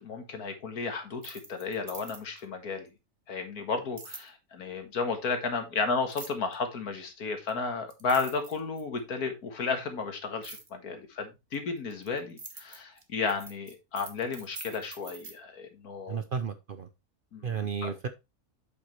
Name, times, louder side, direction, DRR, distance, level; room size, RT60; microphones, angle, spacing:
voice 1, 0.0-2.9 3.3-16.2 17.3-17.9, left 4 dB, 75° left, 2.1 m, -33 dB
sound 1, 1.1-2.4 4.0-4.3 6.1-6.5 7.5-7.6 7.9-9.0 10.4-10.7 11.5-15.3, right 3 dB, 30° right, 1.4 m, -45 dB
voice 2, 16.1-16.9 17.4-18.1, right 6 dB, 55° right, 0.6 m, -33 dB
8.0 x 7.2 x 3.1 m
omnidirectional pair, 1.6 m